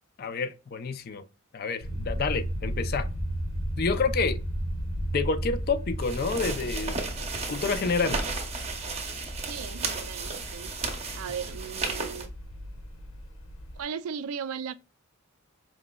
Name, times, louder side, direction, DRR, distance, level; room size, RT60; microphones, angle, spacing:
voice 1, 0.2-1.2 1.5-3.1 3.8-4.4 5.1-7.0 7.5-8.2, left 4 dB, 45° left, 0.4 m, -28 dB
sound 1, 1.8-13.8, equal, 75° left, 1.0 m, -35 dB
sound 2, 6.0-12.3, right 4 dB, 30° right, 0.7 m, -34 dB
Bass guitar, 6.2-12.5, left 1 dB, 5° left, 0.8 m, -47 dB
voice 2, 9.4-12.3 13.8-14.7, right 7 dB, 85° right, 0.4 m, -37 dB
4.9 x 3.0 x 2.2 m
head